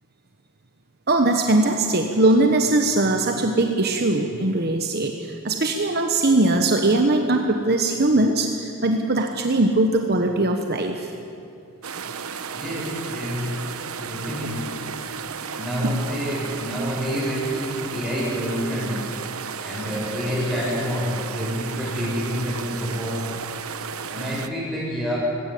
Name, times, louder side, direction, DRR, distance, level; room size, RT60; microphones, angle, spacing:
voice 1, 1.1-11.1, right 2 dB, 45° right, 4 dB, 1.1 m, -20 dB
sound 1, 11.8-24.5, right 6 dB, 75° right, 1.0 m, -34 dB
voice 2, 12.5-13.7 13.9-14.9 15.6-19.1 19.6-23.4 24.1-25.2, equal, ahead, -6 dB, 7.2 m, -28 dB
19.5 x 17.0 x 8.5 m, 2.6 s
head